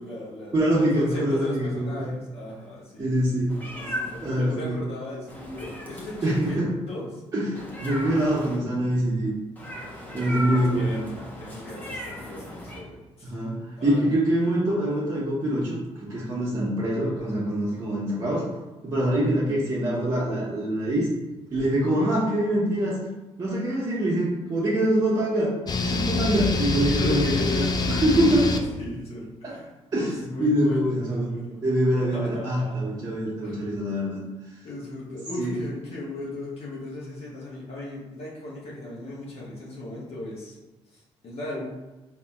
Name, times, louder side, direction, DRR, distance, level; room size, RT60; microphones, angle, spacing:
voice 1, 0.0-3.1 3.7-7.2 10.1-14.1 26.8-28.4 28.7-31.6 32.1-32.9 33.4-33.9 34.6-40.5 40.9-41.6, left 1 dB, 55° left, -6 dB, 1.1 m, -37 dB
voice 2, 0.5-2.1 3.0-3.6 4.2-4.7 6.2-6.7 7.3-9.3 10.1-11.0 13.2-18.4 18.8-21.1 21.5-23.0 23.4-25.5 25.8-28.5 29.4-29.5 29.9-30.1 30.4-31.3 31.6-34.2 35.4-35.5, right 1 dB, 35° right, -9 dB, 1.0 m, -24 dB
Meow, 3.5-4.3 5.3-6.6 7.6-8.6 9.6-12.8, equal, 15° left, 1.0 m, -36 dB
sound 1, 25.7-28.6, left 3 dB, 35° left, 0.4 m, -25 dB
4.0 x 2.8 x 2.3 m, 1.1 s
supercardioid pair, 70°, 12 cm